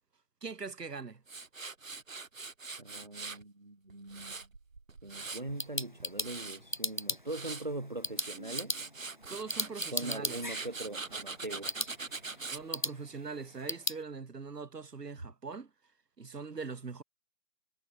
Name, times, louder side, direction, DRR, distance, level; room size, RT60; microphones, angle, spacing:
voice 1, 0.4-1.2 9.3-10.4 12.5-15.7 16.2-17.0, right 4 dB, 80° right, 1.7 m, -42 dB
Tools, 1.3-3.4 3.9-5.6 6.0-6.6 7.1-7.7 8.0-12.6, right 4 dB, 55° right, 1.6 m, -42 dB
voice 2, 2.8-4.5 5.0-8.8 9.9-11.8, right 2 dB, 30° right, 1.6 m, -41 dB
sound 1, 5.3-14.0, equal, 30° left, 1.0 m, -39 dB
figure-of-eight pair, 180°, 47 cm